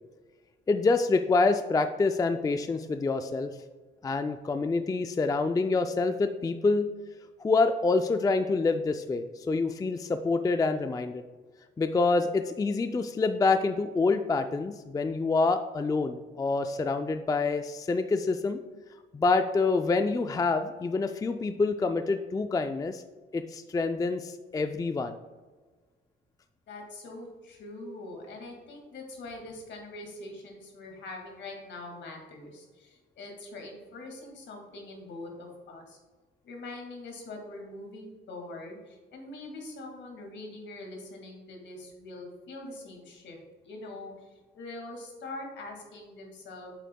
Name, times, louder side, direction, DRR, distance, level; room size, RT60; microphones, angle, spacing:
voice 1, 0.7-3.5 4.0-6.9 7.4-11.2 11.8-18.6 19.1-23.0 23.3-25.1, left 3 dB, 20° left, 8 dB, 0.3 m, -27 dB
voice 2, 26.7-36.0 36.4-43.4 43.6-46.7, left 2 dB, 65° left, 1 dB, 2.1 m, -43 dB
8.3 x 7.6 x 2.2 m, 1.3 s
cardioid pair, 90°, 20 cm